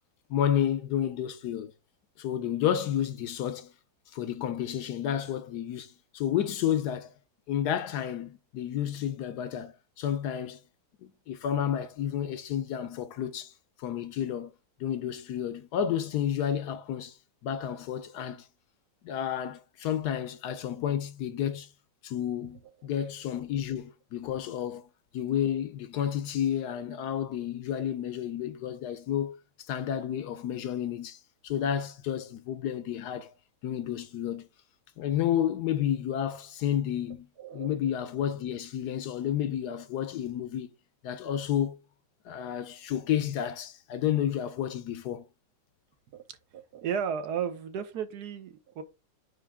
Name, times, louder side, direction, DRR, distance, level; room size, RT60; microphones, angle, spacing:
voice 1, 0.3-1.7 2.2-3.7 4.1-7.1 7.5-10.6 11.0-13.5 13.8-14.5 14.8-17.2 17.4-18.5 19.0-21.7 22.0-24.9 25.1-33.3 33.6-34.5 35.0-40.7 41.0-41.8 42.3-45.2, left 10 dB, 70° left, 1.1 m, -31 dB
voice 2, 37.4-37.7 46.1-46.2 46.5-48.8, right 7 dB, 65° right, 1.3 m, -34 dB
9.1 x 3.3 x 3.5 m
omnidirectional pair, 2.0 m